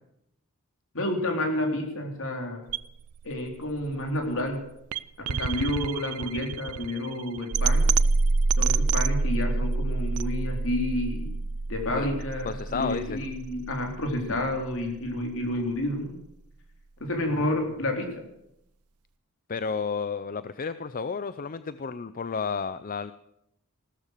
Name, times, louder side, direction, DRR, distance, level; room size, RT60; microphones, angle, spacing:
voice 1, 0.9-2.6 3.2-4.6 5.3-8.0 8.6-11.3 11.7-16.1 17.0-18.1, left 1 dB, 65° left, 2 dB, 3.8 m, -30 dB
sound 1, 2.7-14.7, right 3 dB, 85° right, 0.6 m, -28 dB
voice 2, 12.4-13.2 19.5-23.1, left 5 dB, 40° left, 14 dB, 0.5 m, -32 dB
16.0 x 13.5 x 6.6 m, 0.79 s
head